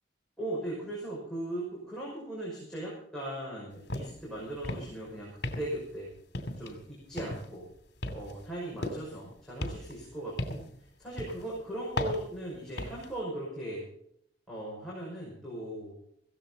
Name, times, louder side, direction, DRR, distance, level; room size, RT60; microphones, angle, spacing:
voice 1, 0.4-6.1 6.6-7.6 8.1-10.7 11.0-13.9 14.5-15.9, right 1 dB, 5° left, -6 dB, 5.8 m, -38 dB
sound 1, 3.9-4.2 4.5-5.0 5.4-5.9 6.3-6.8 7.2-7.6 8.0-9.2 9.6-10.8 11.2-11.5 12.0-13.1, left 1 dB, 60° left, 2.7 m, -36 dB
17.0 x 15.5 x 4.1 m, 0.69 s
head